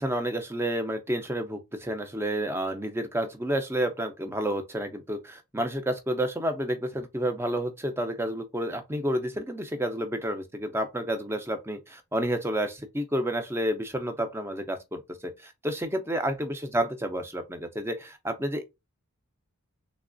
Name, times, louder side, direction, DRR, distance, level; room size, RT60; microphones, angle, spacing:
voice 1, 0.0-18.6, right 1 dB, 10° right, 0.4 m, -30 dB
3.4 x 3.0 x 2.5 m
head